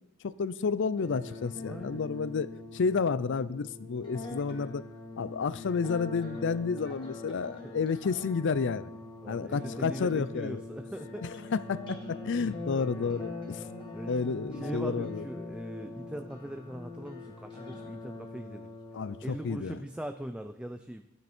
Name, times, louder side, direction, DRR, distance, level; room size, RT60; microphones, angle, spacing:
voice 1, 0.2-4.8 5.2-8.9 9.3-10.6 11.2-13.6 14.1-15.2 18.9-19.8, left 5 dB, 55° left, 17 dB, 0.5 m, -31 dB
sound 1, 0.9-19.9, left 2 dB, 25° left, 2.2 m, -43 dB
voice 2, 1.6-2.0 7.6-7.7 9.2-11.3 12.7-13.3 13.9-14.1 14.5-18.7 19.2-21.0, right 1 dB, 5° right, 7 dB, 0.4 m, -41 dB
13.0 x 9.6 x 4.4 m, 0.87 s
head